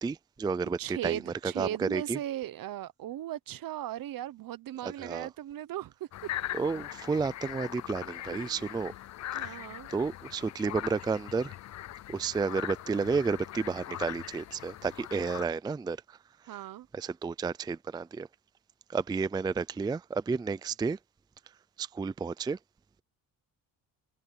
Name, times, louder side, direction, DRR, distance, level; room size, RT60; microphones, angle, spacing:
voice 1, 0.0-2.2 4.8-5.3 6.5-8.9 9.3-9.6 9.9-11.5 12.1-16.2 16.9-18.3 18.9-21.0 21.8-22.6, right 4 dB, 10° right, 0.4 m, -31 dB
voice 2, 0.8-6.1 8.3-8.8 9.3-9.9 16.5-16.9, right 12 dB, 65° right, 1.0 m, -37 dB
sound 1, 6.1-15.4, left 13 dB, 50° left, 0.5 m, -41 dB
cardioid pair, 115°, 37 cm